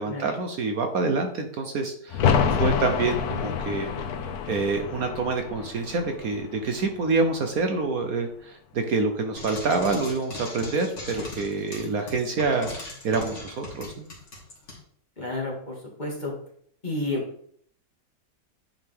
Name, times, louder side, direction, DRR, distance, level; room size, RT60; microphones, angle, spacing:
voice 1, 0.0-2.2 2.5-3.9 4.5-14.0, right 3 dB, 60° right, 5 dB, 1.2 m, -27 dB
sound 1, 2.1-7.7 8.0-8.1, left 6 dB, 65° left, 1.2 m, -28 dB
Frying (food), 9.3-14.8, left 2 dB, 45° left, 2.5 m, -39 dB
voice 2, 15.2-16.3 16.8-17.2, left 2 dB, 25° left, -2 dB, 2.0 m, -31 dB
10.0 x 5.1 x 3.6 m, 0.62 s
omnidirectional pair, 1.9 m